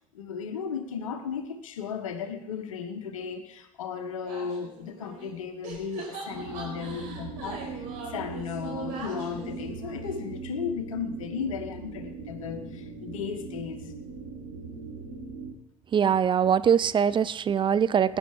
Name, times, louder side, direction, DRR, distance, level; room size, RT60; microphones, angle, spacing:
voice 1, 0.1-7.8 8.1-13.9, left 6 dB, 70° left, 8 dB, 1.4 m, -35 dB
sound 1, 4.3-5.4 5.6-10.3, right 3 dB, 60° right, 4.7 m, -42 dB
sound 2, 6.3-15.5, right 4 dB, 80° right, 4.6 m, -40 dB
voice 2, 15.9-18.2, right 8 dB, 30° right, 16 dB, 0.5 m, -22 dB
18.5 x 10.0 x 4.9 m, 0.77 s
figure-of-eight pair, 60°, 17 cm